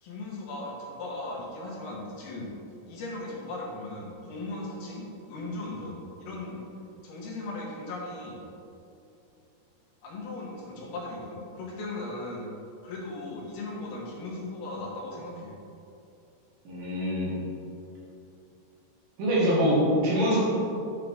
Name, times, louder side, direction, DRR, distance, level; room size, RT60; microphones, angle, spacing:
voice 1, 0.0-2.5 2.9-6.6 7.0-8.4 10.0-12.5 12.8-15.5, left 2 dB, 70° left, -4 dB, 2.9 m, -37 dB
voice 2, 16.6-17.3 19.2-20.4, equal, 65° right, -7 dB, 3.3 m, -24 dB
9.2 x 5.7 x 3.6 m, 2.7 s
omnidirectional pair, 4.7 m